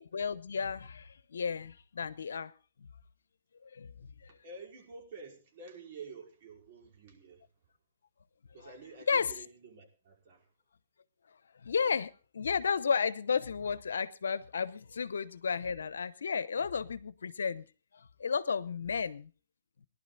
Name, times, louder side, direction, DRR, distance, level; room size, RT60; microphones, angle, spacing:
voice 1, 0.0-2.5 2.8-2.9 3.6-4.3 9.1-9.3 11.6-17.7 17.9-19.3, left 6 dB, 85° left, 0.9 m, -33 dB
voice 2, 4.3-7.5 8.5-10.5, right 4 dB, 55° right, 5.2 m, -49 dB
19.0 x 11.5 x 4.0 m
hypercardioid pair, 135°, 0 cm